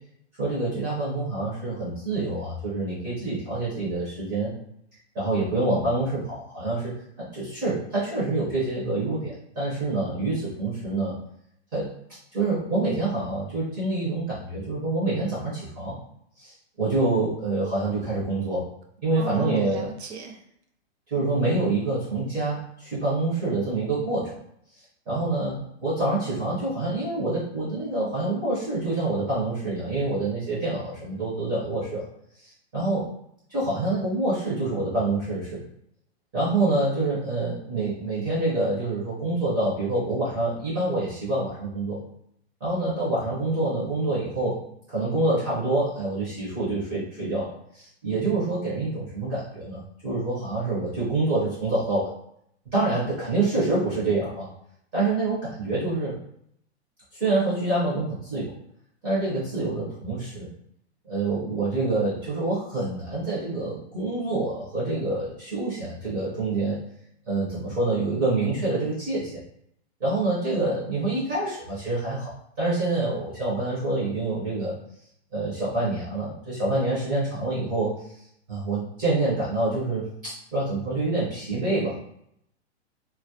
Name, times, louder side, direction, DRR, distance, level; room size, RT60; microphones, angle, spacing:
voice 1, 0.4-4.5 5.1-6.9 7.2-11.2 11.7-11.9 12.3-16.0 16.4-18.7 19.0-19.9 21.1-24.4 25.1-32.0 32.4-33.1 33.5-35.6 36.3-42.0 42.6-44.6 44.9-52.1 52.7-54.5 54.9-56.1 57.1-58.5 59.0-60.5 61.0-66.8 67.3-69.4 70.0-72.3 72.6-74.8 75.3-77.9 78.5-82.0, right 2 dB, 15° right, -9 dB, 0.5 m, -26 dB
voice 2, 19.2-20.4 21.1-21.2, right 6 dB, 70° right, 2 dB, 0.7 m, -35 dB
2.3 x 2.0 x 2.7 m, 0.71 s
hypercardioid pair, 170°, 34 cm